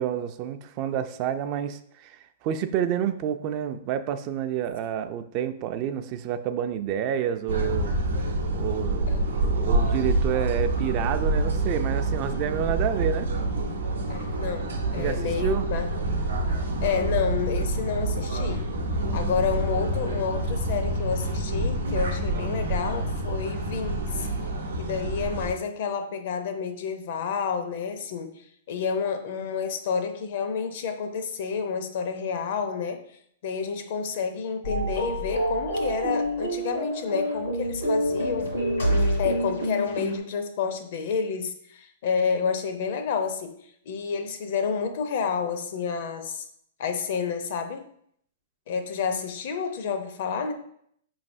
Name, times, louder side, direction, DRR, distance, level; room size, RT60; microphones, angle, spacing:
voice 1, 0.0-8.0 8.5-13.3 14.9-15.7, right 9 dB, 40° right, 9 dB, 0.3 m, -29 dB
sound 1, 7.5-25.5, right 2 dB, 90° right, 0.7 m, -27 dB
voice 2, 14.1-15.9 16.8-18.7 19.1-24.3 24.8-33.0 33.4-38.5 39.2-46.5 46.8-47.9 48.7-50.5, left 6 dB, 60° left, 8 dB, 0.5 m, -29 dB
sound 2, 34.6-40.2, equal, 85° left, 1.6 m, -27 dB
4.8 x 3.1 x 2.6 m, 0.68 s
hypercardioid pair, 130°, 0 cm